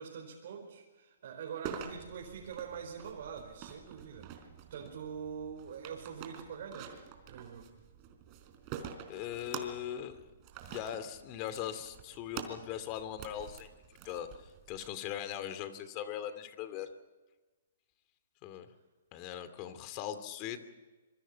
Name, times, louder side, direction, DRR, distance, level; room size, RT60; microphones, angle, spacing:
voice 1, 0.0-7.7, right 7 dB, 60° right, -1 dB, 4.9 m, -44 dB
sound 1, 1.6-14.9, right 8 dB, 30° right, 4.1 m, -47 dB
voice 2, 9.1-10.3 10.7-13.7 14.0-16.9 18.4-18.7 19.1-20.7, left 10 dB, 35° left, 11 dB, 2.5 m, -40 dB
26.5 x 23.5 x 5.8 m, 1.2 s
hypercardioid pair, 145°, 0 cm